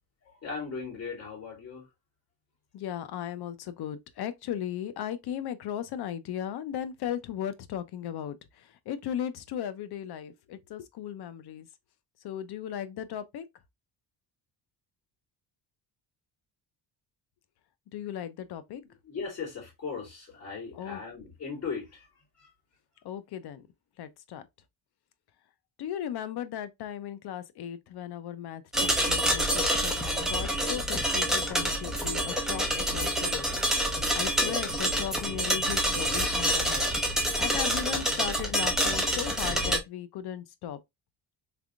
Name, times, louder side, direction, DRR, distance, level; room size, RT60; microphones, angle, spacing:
voice 1, 0.2-1.9 18.8-22.1 22.4-22.5, left 5 dB, 35° left, 2.5 m, -38 dB
voice 2, 2.7-11.7 12.2-13.4 17.9-18.8 20.7-21.0 23.0-23.7 24.0-24.4 25.8-33.6 34.1-36.9 37.4-40.8, left 10 dB, 70° left, 0.7 m, -37 dB
sound 1, 28.7-39.8, equal, ahead, 0.8 m, -27 dB
3.4 x 3.3 x 2.4 m
cardioid pair, 140°, 41 cm